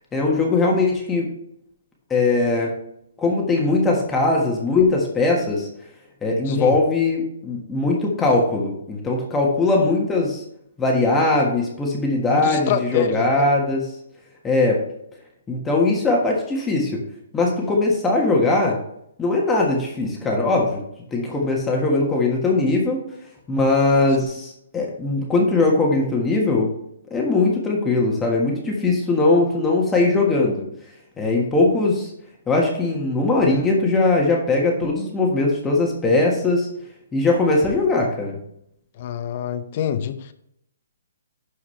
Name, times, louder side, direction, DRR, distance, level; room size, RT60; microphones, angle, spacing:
voice 1, 0.1-1.3 2.1-2.7 3.2-5.7 6.2-10.4 10.8-13.9 14.4-14.8 15.5-17.0 17.3-18.8 19.2-20.8 21.1-23.0 23.5-26.7 27.1-30.7 31.2-32.1 32.5-36.7 37.1-38.4, left 3 dB, 10° left, -1 dB, 1.4 m, -20 dB
voice 2, 6.5-6.8 12.3-13.5 39.0-40.3, left 9 dB, 45° left, 10 dB, 0.7 m, -26 dB
12.0 x 4.7 x 3.3 m, 0.75 s
hypercardioid pair, 150°, 0 cm